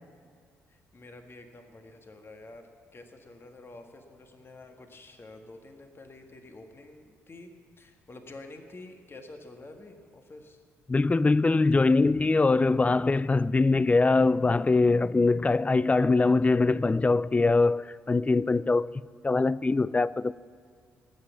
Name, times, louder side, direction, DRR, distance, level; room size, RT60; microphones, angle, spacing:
voice 1, 0.7-10.6, left 2 dB, 35° left, 1.7 m, -48 dB
voice 2, 10.9-18.9 19.2-20.3, left 3 dB, 20° left, 0.4 m, -23 dB
19.0 x 8.1 x 7.3 m
hypercardioid pair, 45°, 7 cm